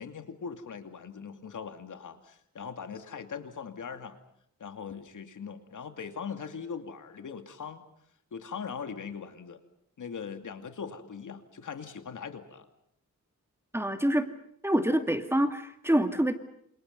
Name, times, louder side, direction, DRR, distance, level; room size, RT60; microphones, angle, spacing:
voice 1, 0.0-4.2 4.6-7.8 8.3-9.6 10.0-12.7, left 6 dB, 80° left, 7 dB, 2.6 m, -40 dB
voice 2, 13.7-14.3 14.6-16.3, right 1 dB, 10° right, 7 dB, 2.4 m, -26 dB
28.5 x 28.0 x 5.5 m, 0.71 s
wide cardioid pair, 105°, 31 cm